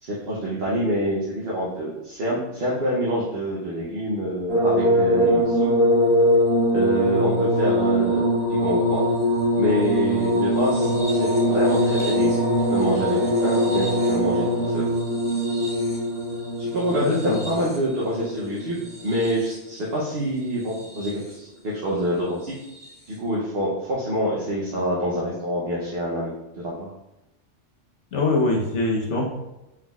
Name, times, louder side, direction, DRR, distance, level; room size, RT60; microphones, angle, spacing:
voice 1, 0.0-5.7 6.7-9.0 9.6-14.9 16.6-22.5 23.1-26.9, right 1 dB, 55° right, -6 dB, 1.0 m, -26 dB
sound 1, 4.5-19.7 20.6-21.3 22.7-22.9, equal, 5° left, 1.3 m, -22 dB
Brass instrument, 10.5-14.7, left 1 dB, 85° right, 2.0 m, -30 dB
voice 2, 17.0-17.4 28.1-29.2, left 3 dB, 70° left, -2 dB, 1.2 m, -23 dB
4.5 x 3.8 x 2.3 m, 0.96 s
omnidirectional pair, 1.3 m